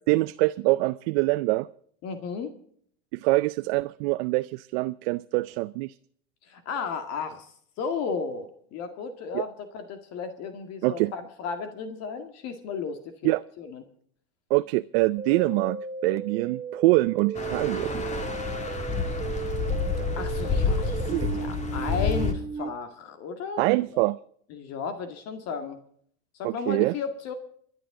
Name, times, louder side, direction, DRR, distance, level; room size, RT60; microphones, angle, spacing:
voice 1, 0.1-1.7 3.1-5.9 9.3-9.4 10.8-11.1 13.2-13.4 14.5-15.8 16.0-18.0 21.1-21.4 23.6-24.2 26.4-26.9, right 21 dB, 70° right, 0.5 m, -24 dB
voice 2, 2.0-2.5 6.5-7.5 7.8-13.8 20.2-23.6 23.9-24.0 24.5-25.8 26.3-27.3, left 5 dB, 55° left, 2.0 m, -34 dB
sound 1, 15.2-22.7, right 5 dB, 20° right, 0.9 m, -35 dB
sound 2, 17.3-22.3, left 4 dB, 20° left, 2.3 m, -29 dB
27.5 x 11.0 x 3.7 m
supercardioid pair, 105°, 31 cm